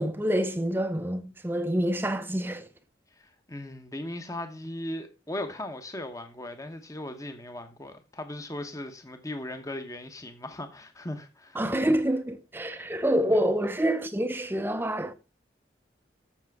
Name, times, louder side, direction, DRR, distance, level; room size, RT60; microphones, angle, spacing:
voice 1, 0.0-2.7 11.6-15.1, equal, 10° right, 0.6 m, -27 dB
voice 2, 3.1-11.6 13.3-13.5, left 1 dB, 20° left, 0.9 m, -38 dB
7.3 x 6.9 x 4.6 m
head